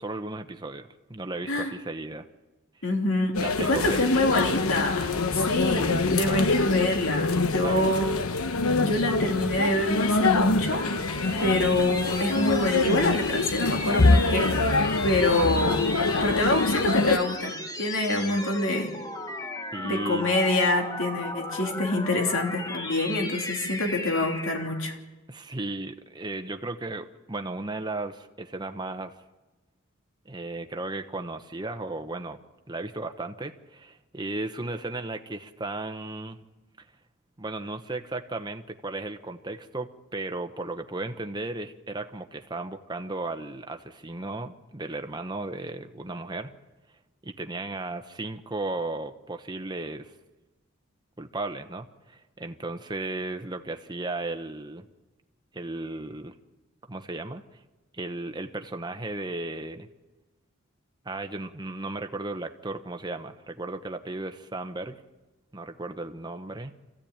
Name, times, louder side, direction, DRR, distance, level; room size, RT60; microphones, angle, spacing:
voice 1, 0.0-2.3 3.3-4.2 6.2-6.5 7.6-7.9 11.4-11.8 19.7-20.3 25.3-29.1 30.2-32.4 32.7-36.4 37.4-46.5 47.2-50.1 51.2-54.8 55.5-56.4 56.9-57.4 58.0-59.9 61.0-65.0 65.5-66.7, right 2 dB, 20° right, 7 dB, 1.0 m, -35 dB
voice 2, 2.8-8.1 8.8-10.9 11.4-15.8 16.2-18.9 19.8-24.9, left 2 dB, 65° left, 2 dB, 3.1 m, -26 dB
sound 1, 3.3-17.2, left 3 dB, 85° left, 1.1 m, -25 dB
sound 2, 10.3-24.9, left 2 dB, 15° left, 1.2 m, -36 dB
26.0 x 15.5 x 8.9 m, 1.1 s
head